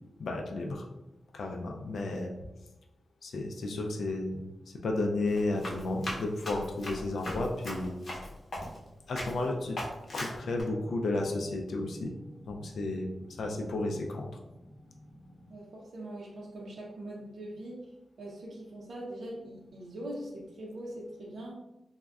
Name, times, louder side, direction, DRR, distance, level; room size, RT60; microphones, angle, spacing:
voice 1, 0.2-0.9 1.3-2.3 3.2-8.3 9.1-9.8 10.1-12.1 12.5-14.3, left 2 dB, 80° left, 2 dB, 0.3 m, -33 dB
Run, 5.3-8.9 9.2-9.4 9.8-10.6, left 1 dB, 45° left, 0.8 m, -39 dB
sound 1, 8.4-12.4, left 2 dB, ahead, 0.4 m, -56 dB
sound 2, 10.3-15.6, equal, 45° right, 0.8 m, -53 dB
voice 2, 15.5-17.8 18.2-21.6, right 1 dB, 75° right, -3 dB, 0.5 m, -42 dB
3.4 x 2.0 x 2.3 m, 0.97 s
wide cardioid pair, 145°, 0 cm